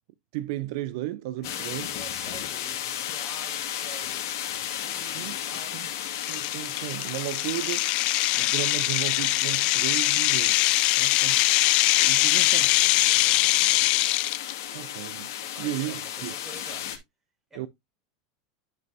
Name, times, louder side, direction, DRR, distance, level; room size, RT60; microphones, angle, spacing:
voice 1, 0.3-1.9 5.1-5.4 5.7-5.9 6.3-7.9 8.3-10.6 11.0-11.5 12.0-12.9 14.7-15.3 15.6-16.3 17.6-17.7, right 15 dB, 65° right, 0.5 m, -34 dB
sound 1, 1.4-17.0, left 11 dB, 75° left, 2.0 m, -34 dB
voice 2, 1.4-5.9 12.3-14.1 15.4-16.9 17.5-17.7, right 3 dB, 15° right, 4.3 m, -49 dB
sound 2, 4.3-4.4 4.9-5.1 5.5-5.6 6.2-14.5, left 20 dB, 55° left, 0.3 m, -23 dB
10.5 x 5.5 x 2.7 m
hypercardioid pair, 110°, 2 cm